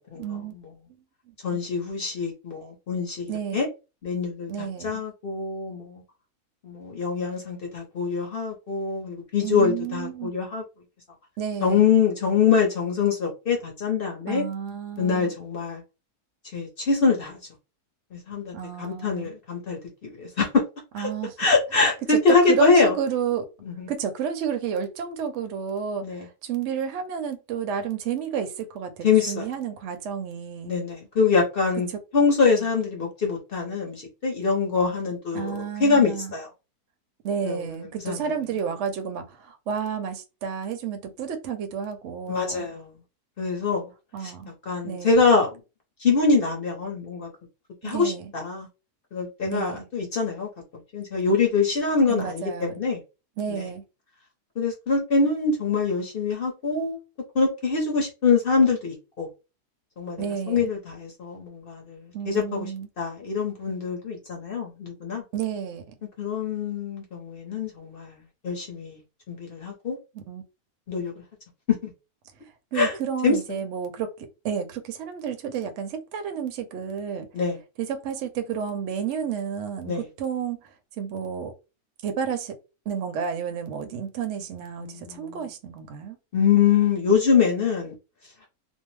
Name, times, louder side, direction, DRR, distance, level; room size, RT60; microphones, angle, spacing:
voice 1, 0.2-0.6 1.3-1.6 3.3-3.6 4.5-5.0 9.4-10.3 11.4-11.9 14.3-15.3 18.5-19.3 20.9-21.3 22.1-22.2 22.5-23.5 23.9-30.8 31.9-32.0 32.6-32.7 35.3-36.3 37.2-42.7 44.1-44.5 44.8-45.2 47.8-48.3 49.4-49.9 52.1-52.7 53.4-53.8 60.2-60.7 62.1-62.9 65.3-65.9 70.1-70.4 71.0-71.1 72.7-77.3 77.8-80.7 81.0-81.5 82.0-82.6 82.9-86.2, right 7 dB, 65° right, 0.8 m, -31 dB
voice 2, 1.4-3.7 4.0-6.0 6.6-10.6 11.6-14.4 15.0-15.8 16.5-17.4 18.1-19.8 20.2-20.6 21.0-21.1 21.4-22.9 23.8-23.9 26.0-26.2 29.0-29.4 30.6-31.9 32.1-36.5 37.4-37.7 38.0-38.2 42.3-42.9 43.4-43.9 44.7-45.5 46.0-47.3 47.8-48.7 49.1-50.5 50.9-53.0 53.6-53.7 54.6-57.0 57.3-59.3 60.0-62.7 63.0-65.2 66.2-68.2 68.4-69.0 69.3-70.0 70.9-71.1 71.7-71.9 72.7-72.9 73.2-73.3 77.3-77.6 79.9-80.0 84.8-85.4 86.3-87.9, left 5 dB, 50° left, 0.8 m, -24 dB
2.6 x 2.0 x 3.1 m
omnidirectional pair, 1.6 m